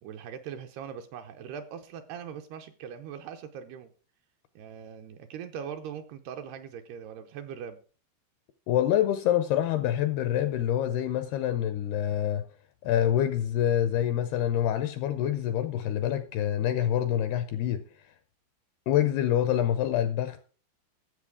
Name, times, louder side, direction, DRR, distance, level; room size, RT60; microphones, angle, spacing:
voice 1, 0.0-3.9 4.6-7.8, right 8 dB, 75° right, 2.5 m, -41 dB
voice 2, 8.7-12.4 12.8-17.8 18.9-20.4, left 11 dB, 80° left, 2.3 m, -26 dB
13.5 x 7.5 x 4.8 m
omnidirectional pair, 5.2 m